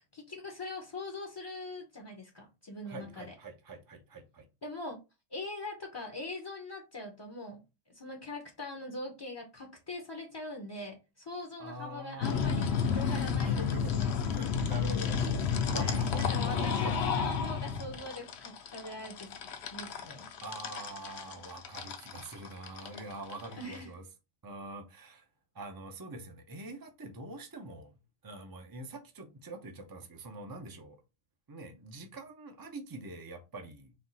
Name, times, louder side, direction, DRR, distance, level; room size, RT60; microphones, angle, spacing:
voice 1, 0.1-3.3 4.6-5.0 5.3-7.6 7.9-14.2 15.7-19.3 19.7-20.3 23.6-23.9, left 2 dB, 30° left, 0.5 m, -42 dB
voice 2, 2.8-4.5 11.6-14.0 14.3-16.9 20.4-24.0 24.4-25.2 25.5-28.0 28.2-31.0 31.5-33.9, right 1 dB, 35° right, 0.3 m, -44 dB
sound 1, 12.2-23.8, left 6 dB, 65° left, 0.8 m, -31 dB
4.3 x 2.4 x 3.9 m
omnidirectional pair, 1.2 m